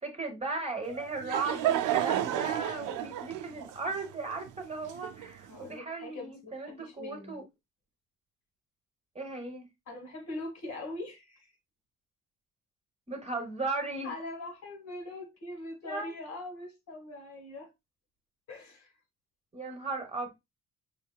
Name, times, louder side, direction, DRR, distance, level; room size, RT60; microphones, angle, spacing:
voice 1, 0.0-7.4 9.1-9.7 13.1-14.1 15.8-16.1 19.5-20.3, right 3 dB, 20° right, 1.0 m, -36 dB
Laughter / Crowd, 0.9-5.5, right 11 dB, 85° right, 0.5 m, -31 dB
voice 2, 5.5-7.4 9.9-11.5 14.0-17.7 18.5-18.9, left 2 dB, 65° left, 1.8 m, -42 dB
5.2 x 2.8 x 2.2 m
cardioid pair, 90°, 30 cm